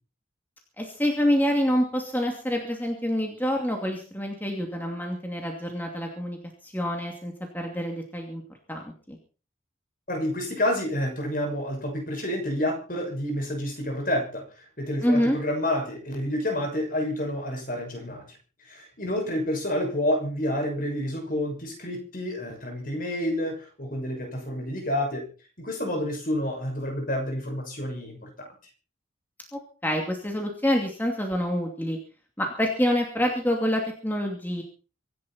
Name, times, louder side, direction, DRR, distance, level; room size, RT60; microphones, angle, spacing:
voice 1, 0.8-6.4 6.6-8.4 8.7-9.2 15.0-15.4 29.5-32.0 32.4-34.6, equal, 10° left, 1 dB, 2.6 m, -27 dB
voice 2, 10.1-25.2 25.6-28.5, left 1 dB, 45° left, 4 dB, 6.5 m, -29 dB
25.5 x 11.0 x 4.4 m, 0.37 s
head